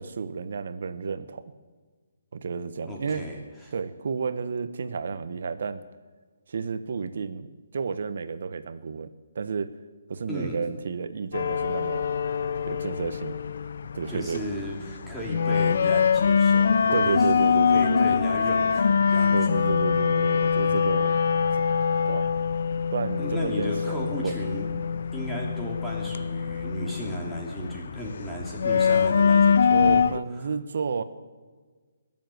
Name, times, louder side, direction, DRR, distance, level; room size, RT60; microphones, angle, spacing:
voice 1, 0.0-1.4 2.3-3.3 3.7-5.8 6.5-9.7 10.1-12.1 12.7-13.3 13.9-14.4 16.9-18.2 19.3-21.6 22.1-22.3 22.9-24.4 29.7-31.0, right 5 dB, 60° right, 12 dB, 1.2 m, -31 dB
voice 2, 2.9-3.7 10.3-10.6 14.1-19.4 20.7-20.8 23.2-24.7 25.1-30.0 30.3-30.5, equal, 5° left, -4 dB, 2.8 m, -35 dB
sound 1, 11.3-30.2, left 6 dB, 55° left, 0.6 m, -24 dB
20.5 x 7.5 x 9.1 m, 1.5 s
hypercardioid pair, 170°, 0 cm